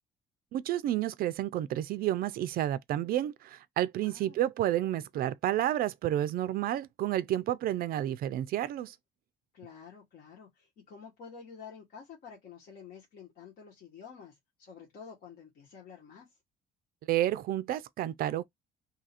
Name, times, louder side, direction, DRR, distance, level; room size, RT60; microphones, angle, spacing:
voice 1, 0.5-9.0 17.1-18.4, right 12 dB, 60° right, 0.4 m, -30 dB
voice 2, 4.0-4.4 9.5-16.3, left 6 dB, 60° left, 1.2 m, -50 dB
2.7 x 2.4 x 4.1 m
cardioid pair, 110°, 17 cm